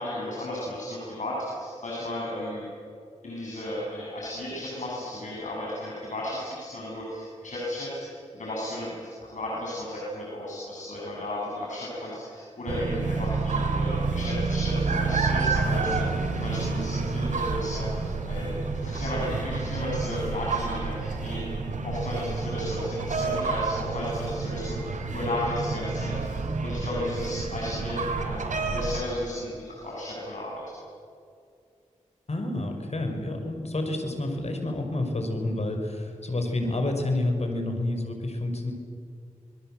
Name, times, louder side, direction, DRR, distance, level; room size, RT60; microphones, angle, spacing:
voice 1, 0.0-2.7 3.2-21.5 21.8-28.4 28.7-30.7, left 1 dB, 75° left, -5 dB, 7.8 m, -34 dB
sound 1, 12.7-29.0, right 4 dB, 85° right, 3.1 m, -29 dB
voice 2, 32.3-38.7, left 2 dB, 60° left, 4 dB, 5.8 m, -29 dB
28.0 x 22.0 x 7.9 m, 2.4 s
cardioid pair, 45°, 13 cm